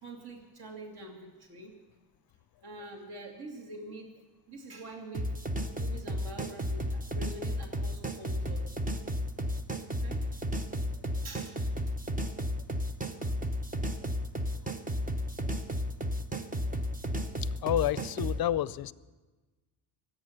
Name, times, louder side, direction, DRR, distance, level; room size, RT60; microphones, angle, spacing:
voice 1, 0.0-1.7 2.6-4.1 4.5-5.3 5.7-8.8 9.8-10.2 11.2-11.6, right 2 dB, 50° right, 1 dB, 2.5 m, -45 dB
sound 1, 5.1-18.4, equal, 15° right, 0.8 m, -33 dB
voice 2, 17.4-18.9, left 12 dB, 50° left, 18 dB, 0.5 m, -30 dB
23.0 x 8.9 x 6.5 m, 1.2 s
cardioid pair, 125°, 49 cm